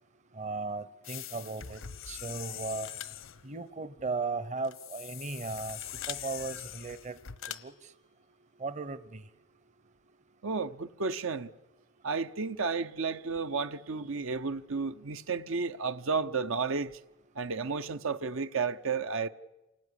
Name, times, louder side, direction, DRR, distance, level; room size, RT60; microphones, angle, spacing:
voice 1, 0.3-2.9 3.4-7.2 7.6-7.9 8.6-9.2, right 3 dB, 35° right, 0.8 m, -37 dB
sound 1, 1.0-3.5 4.7-7.4, left 10 dB, 70° left, 0.9 m, -43 dB
sound 2, 2.8-3.3 4.6-4.8 6.0-6.3 7.4-7.8, left 11 dB, 90° left, 1.2 m, -42 dB
voice 2, 10.4-11.5 12.0-16.9 17.3-19.3, right 4 dB, 75° right, 0.9 m, -32 dB
28.0 x 18.5 x 10.0 m
head